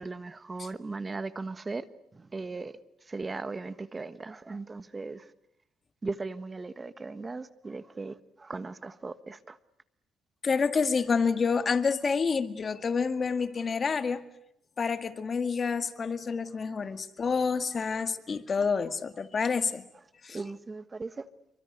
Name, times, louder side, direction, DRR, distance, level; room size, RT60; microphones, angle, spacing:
voice 1, 0.0-1.9 2.1-2.8 3.1-5.3 6.0-9.6 20.3-21.2, right 3 dB, 25° right, 1.3 m, -38 dB
voice 2, 10.4-14.2 14.8-19.8 20.2-20.4, left 5 dB, 40° left, 1.9 m, -28 dB
28.0 x 24.5 x 8.1 m
cardioid pair, 90°, 0 cm